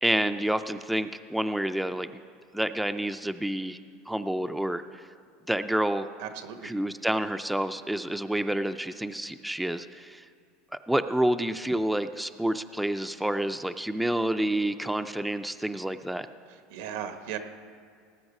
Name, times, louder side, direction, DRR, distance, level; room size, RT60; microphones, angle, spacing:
voice 1, 0.0-2.1 2.5-3.8 4.1-5.0 5.5-6.1 6.6-10.3 10.7-16.3, right 1 dB, 5° right, 9 dB, 0.3 m, -28 dB
voice 2, 6.2-6.7 16.5-17.4, right 9 dB, 80° right, 8 dB, 1.1 m, -37 dB
18.0 x 7.9 x 5.4 m, 2.3 s
supercardioid pair, 125°, 0 cm